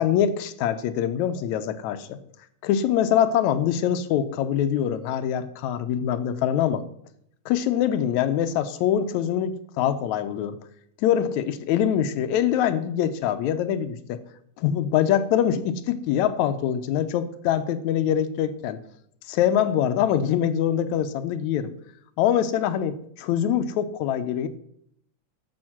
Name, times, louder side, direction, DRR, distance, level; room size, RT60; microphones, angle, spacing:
voice 1, 0.0-2.2 2.6-6.8 7.5-10.6 11.0-14.2 14.6-18.8 19.3-21.7 22.2-24.5, left 9 dB, 75° left, 12 dB, 1.8 m, -24 dB
12.5 x 7.0 x 6.0 m, 0.70 s
omnidirectional pair, 3.9 m